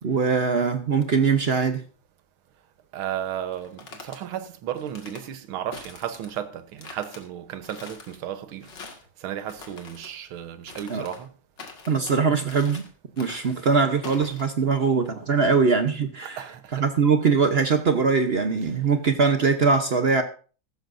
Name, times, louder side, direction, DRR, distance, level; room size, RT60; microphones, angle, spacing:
voice 1, 0.0-1.8 10.9-11.0 11.9-12.8 13.2-16.4 16.7-20.2, right 5 dB, 55° right, 0.6 m, -22 dB
voice 2, 2.9-8.7 9.2-11.3 16.2-16.8 18.6-18.8, right 10 dB, 75° right, 1.8 m, -34 dB
sound 1, 3.5-4.2 4.8-5.2 5.7-6.4 6.8-7.2 7.6-8.2 8.6-9.1 9.4-10.1 10.7-11.2 11.6-12.2 12.5-12.9 13.2-13.6 14.0-14.4, left 4 dB, 55° left, 2.6 m, -43 dB
15.0 x 13.5 x 2.6 m
omnidirectional pair, 2.3 m